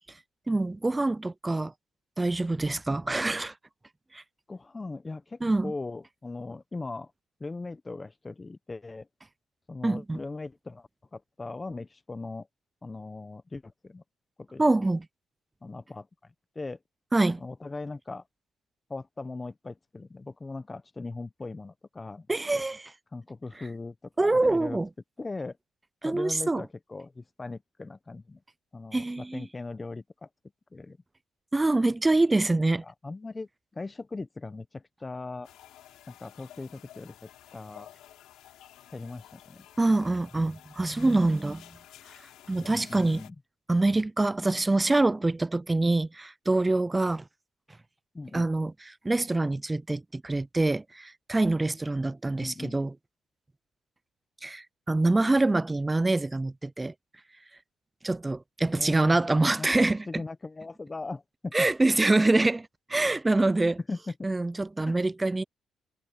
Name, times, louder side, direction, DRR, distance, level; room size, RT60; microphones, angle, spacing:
voice 1, 0.5-1.7 2.2-3.5 4.1-4.2 5.4-5.7 9.8-10.2 14.6-15.1 17.1-17.4 22.3-22.9 24.2-24.9 26.0-26.6 28.9-29.5 31.5-32.8 39.8-41.7 42.5-43.2 43.7-47.2 48.3-52.9 54.4-56.9 58.0-60.2 61.5-63.8 64.2-65.4, right 2 dB, 15° right, 0.3 m, -25 dB
voice 2, 4.5-7.1 7.4-9.1 9.7-12.5 12.8-14.0 14.4-14.8 15.6-16.8 17.4-18.2 18.9-22.3 22.5-22.6 23.1-24.8 25.2-25.6 26.0-28.4 28.7-30.3 30.7-31.0 32.8-33.5 33.7-35.5 36.1-37.9 38.9-39.7 42.6-43.3 48.1-48.5 52.4-52.8 58.7-59.2 59.6-61.5 62.2-62.3 63.9-64.1 64.9-65.0, left 3 dB, 25° left, 0.8 m, -39 dB
sound 1, 35.4-43.3, left 13 dB, 85° left, 4.5 m, -52 dB
cardioid pair, 90°, 0 cm